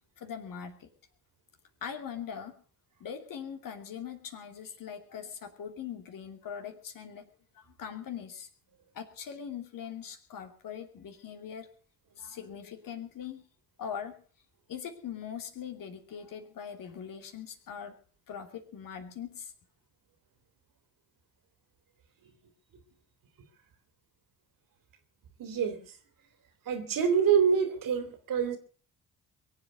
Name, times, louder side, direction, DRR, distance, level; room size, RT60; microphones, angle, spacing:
voice 1, 0.2-0.9 1.8-2.6 3.0-7.3 7.5-8.5 8.9-11.7 12.2-13.5 13.8-14.2 14.7-18.0 18.3-19.5, left 8 dB, 60° left, 2.7 m, -41 dB
voice 2, 25.4-25.8 26.7-28.6, right 7 dB, 60° right, 2.8 m, -26 dB
22.5 x 8.1 x 6.8 m
hypercardioid pair, 45°, 38 cm